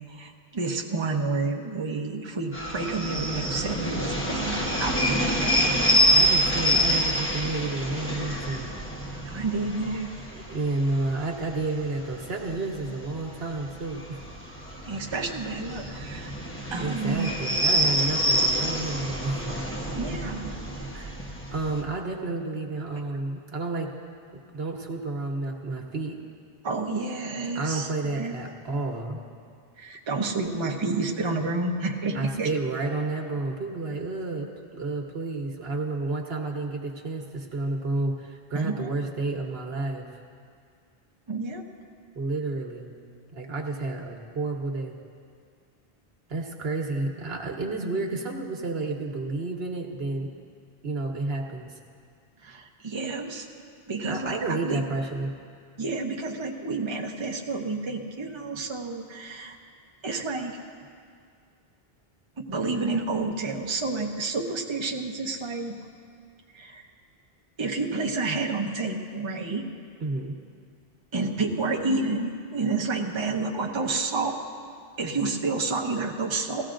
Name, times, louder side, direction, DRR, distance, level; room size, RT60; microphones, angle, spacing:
voice 1, 0.0-5.5 9.2-10.1 14.8-16.3 16.7-17.3 19.9-20.5 26.6-28.4 29.8-32.5 38.5-38.9 41.3-41.6 52.4-53.5 53.9-54.8 55.8-59.5 60.0-60.5 62.5-65.8 66.5-66.8 67.6-69.6 71.1-74.4 75.0-76.7, right 3 dB, 30° right, 1 dB, 0.8 m, -30 dB
sound 1, 2.5-21.8, equal, 15° left, 1.0 m, -27 dB
voice 2, 6.2-8.7 10.3-14.2 15.0-15.1 16.8-19.7 20.9-23.9 24.3-26.2 27.5-29.2 32.1-40.1 42.1-42.9 43.3-45.0 46.3-50.3 50.8-51.7 54.1-55.3 70.0-70.4, right 2 dB, 80° right, 1 dB, 1.4 m, -31 dB
18.5 x 15.0 x 2.5 m, 2.2 s
omnidirectional pair, 1.0 m